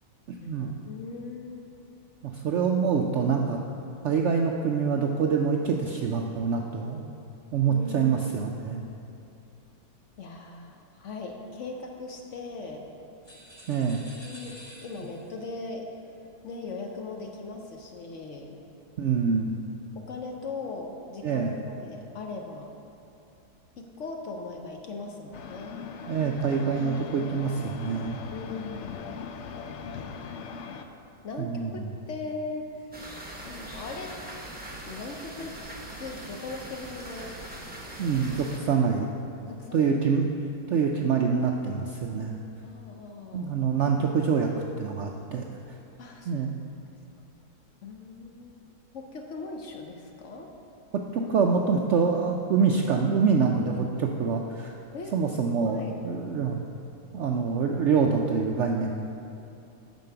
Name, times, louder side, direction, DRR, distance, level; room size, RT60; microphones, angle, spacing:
voice 1, 0.4-1.7 7.7-8.2 10.2-12.9 14.2-15.9 16.4-18.6 20.0-22.7 23.8-25.8 28.3-29.1 31.2-32.9 33.4-34.1 34.8-35.5 36.0-37.4 38.0-38.2 39.5-39.9 42.6-43.6 46.0-46.5 47.8-48.6 48.9-50.5 54.9-55.1 55.7-56.0, left 3 dB, 60° left, 2 dB, 0.8 m, -39 dB
voice 2, 2.2-3.6 4.0-7.0 7.5-8.9 13.7-14.0 19.0-19.5 21.2-21.6 26.1-28.2 31.4-31.9 38.0-39.1 39.7-40.3 40.7-42.4 43.3-44.5 44.8-45.4 46.3-46.5 51.1-54.7 55.1-56.6 57.1-58.9, right 5 dB, 85° right, 2 dB, 0.6 m, -25 dB
sound 1, 13.2-15.4, equal, 15° left, 1.1 m, -49 dB
sound 2, 25.3-30.9, left 5 dB, 85° left, 0.6 m, -39 dB
sound 3, 32.9-38.6, right 1 dB, 10° right, 0.6 m, -41 dB
9.2 x 5.3 x 6.8 m, 2.7 s
omnidirectional pair, 1.8 m